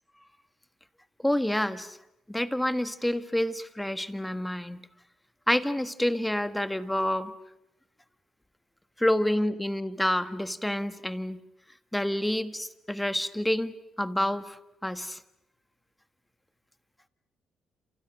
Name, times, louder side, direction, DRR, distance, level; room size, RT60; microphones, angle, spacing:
voice 1, 1.2-2.0 2.3-4.8 5.5-7.3 9.0-11.4 11.9-15.2, left 1 dB, 5° left, 10 dB, 1.5 m, -28 dB
29.0 x 28.0 x 6.0 m, 0.88 s
cardioid pair, 90°, 0 cm